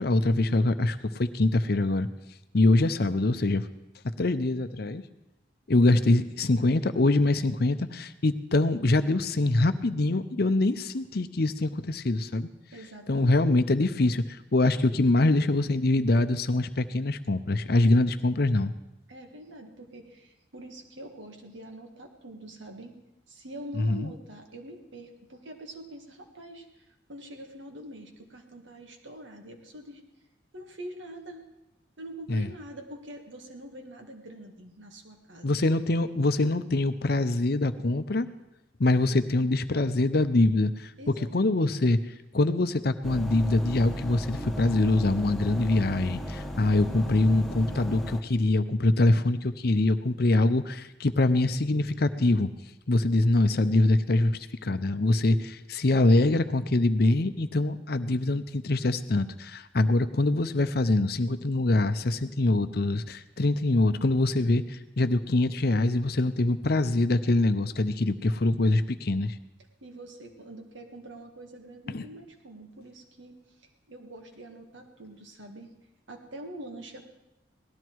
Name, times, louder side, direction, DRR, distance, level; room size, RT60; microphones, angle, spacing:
voice 1, 0.0-2.1 2.5-3.7 4.2-5.0 5.7-12.5 13.1-18.7 23.8-24.1 32.3-32.5 35.4-38.3 38.8-42.0 42.3-52.5 52.9-69.3 71.9-72.0, left 2 dB, 55° left, 11 dB, 0.7 m, -24 dB
voice 2, 12.7-13.5 19.1-22.9 23.3-30.0 30.5-31.5 32.0-35.6 41.0-41.9 69.8-75.7 76.1-77.1, right 1 dB, 80° right, 4 dB, 1.8 m, -45 dB
sound 1, 43.0-48.2, equal, ahead, 1.0 m, -36 dB
18.0 x 13.0 x 4.6 m, 0.93 s
head